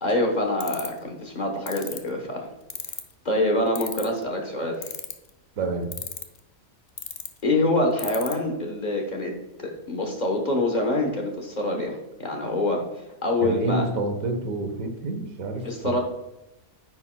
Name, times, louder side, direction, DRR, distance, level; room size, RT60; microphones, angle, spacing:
voice 1, 0.0-2.5 3.2-4.8 7.4-9.3 9.6-13.8 15.6-16.0, left 1 dB, 35° left, 2 dB, 1.2 m, -25 dB
sound 1, 0.6-1.0 1.7-2.0 2.7-3.1 3.8-4.2 4.8-5.3 5.9-6.4 7.0-7.3 8.0-8.3, left 7 dB, 70° left, 0.3 m, -32 dB
voice 2, 5.6-5.9 13.4-15.9, right 2 dB, 75° right, 5 dB, 1.5 m, -28 dB
9.4 x 6.2 x 2.2 m, 0.94 s
omnidirectional pair, 1.5 m